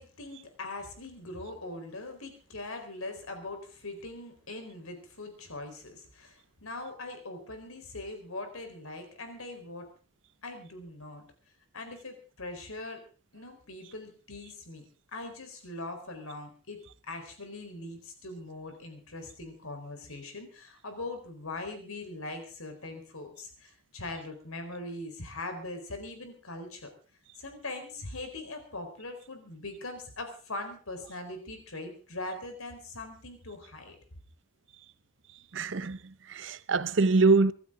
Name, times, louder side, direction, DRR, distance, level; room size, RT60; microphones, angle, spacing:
voice 1, 0.0-9.9 10.4-11.2 11.7-13.0 13.3-14.9 15.1-26.9 27.4-34.0, left 2 dB, 90° left, 4.3 m, -41 dB
voice 2, 35.5-37.5, right 3 dB, 60° right, 0.7 m, -24 dB
25.0 x 12.5 x 3.8 m
head